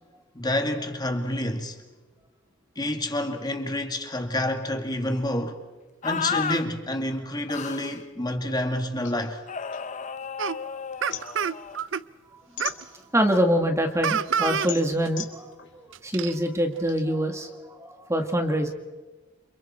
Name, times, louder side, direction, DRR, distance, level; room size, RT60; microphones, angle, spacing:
voice 1, 0.3-1.8 2.8-5.6 6.0-9.4, left 1 dB, 20° left, 2.2 m, -28 dB
sound 1, 6.0-6.6 7.5-8.0 9.5-11.8, left 6 dB, 35° left, 0.8 m, -32 dB
sound 2, 9.0-10.5 10.8-13.4 13.8-17.0, left 9 dB, 60° left, 3.2 m, -40 dB
sound 3, 10.4-10.6 11.0-12.0 12.6-12.8 14.0-14.7 15.0-15.1 15.9-16.3, right 7 dB, 65° right, 0.6 m, -27 dB
voice 2, 12.3-18.7, equal, 15° right, 1.8 m, -26 dB
29.5 x 27.5 x 4.4 m
head